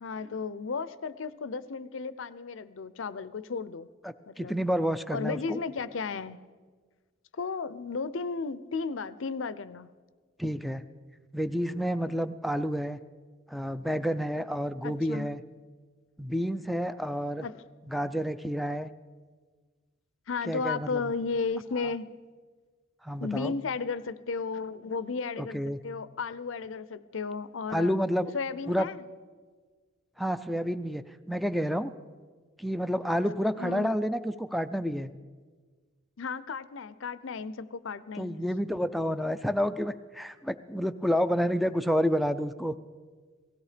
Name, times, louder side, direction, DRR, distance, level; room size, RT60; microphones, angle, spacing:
voice 1, 0.0-3.9 4.3-4.6 5.1-6.4 7.3-9.9 14.8-15.3 17.4-17.6 20.3-22.1 23.2-28.0 28.3-29.0 33.6-33.9 36.2-38.4, left 4 dB, 70° left, 16 dB, 0.6 m, -34 dB
voice 2, 4.0-5.6 10.4-10.8 11.3-13.0 13.5-15.4 16.2-17.5 17.9-18.9 20.5-21.0 23.0-23.5 25.4-25.8 27.7-28.3 28.7-28.9 30.2-31.9 32.6-35.1 38.2-42.7, equal, ahead, 12 dB, 0.4 m, -29 dB
17.5 x 16.5 x 5.0 m, 1.5 s
head